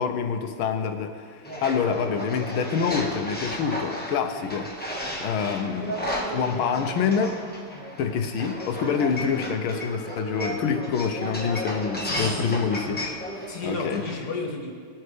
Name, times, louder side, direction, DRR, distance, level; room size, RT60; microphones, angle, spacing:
voice 1, 0.0-4.7 5.2-7.4 8.0-13.0 13.6-14.0, left 6 dB, 80° left, 7 dB, 1.6 m, -26 dB
sound 1, 1.4-14.1, equal, 5° left, 0.8 m, -33 dB
voice 2, 12.0-12.7 13.5-14.7, left 3 dB, 50° left, 0 dB, 2.0 m, -32 dB
19.0 x 9.0 x 3.4 m, 2.1 s
omnidirectional pair, 2.3 m